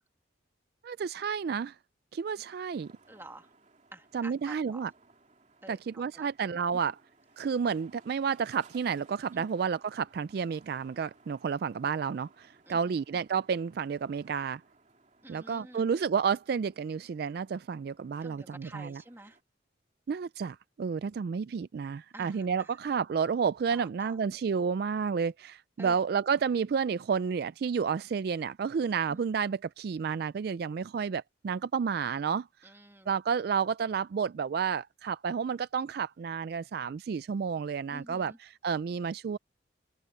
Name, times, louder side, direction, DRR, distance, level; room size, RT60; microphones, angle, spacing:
voice 1, 0.8-1.8 2.1-2.9 4.1-4.9 5.7-7.0 7.4-14.6 15.3-19.0 20.1-32.5 33.1-39.4, right 6 dB, 55° right, 0.3 m, -31 dB
sound 1, 2.7-19.4, right 3 dB, 40° right, 3.2 m, -62 dB
voice 2, 3.1-3.5 3.9-4.9 5.6-6.3 6.7-6.8 9.3-9.5 12.7-13.0 15.2-15.8 18.2-19.4 22.1-22.7 23.7-24.2 25.8-26.0 29.1-29.2 32.6-33.1 37.9-38.4, right 1 dB, 15° right, 2.0 m, -49 dB
open air
head